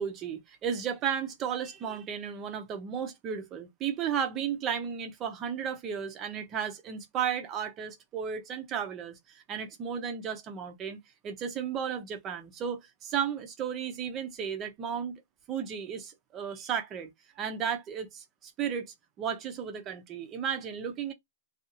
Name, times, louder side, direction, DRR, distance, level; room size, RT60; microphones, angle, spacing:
voice 1, 0.0-11.0 11.2-15.2 15.5-17.1 17.4-21.1, right 8 dB, 20° right, 0.6 m, -34 dB
2.6 x 2.4 x 2.6 m
hypercardioid pair, 165°, 0 cm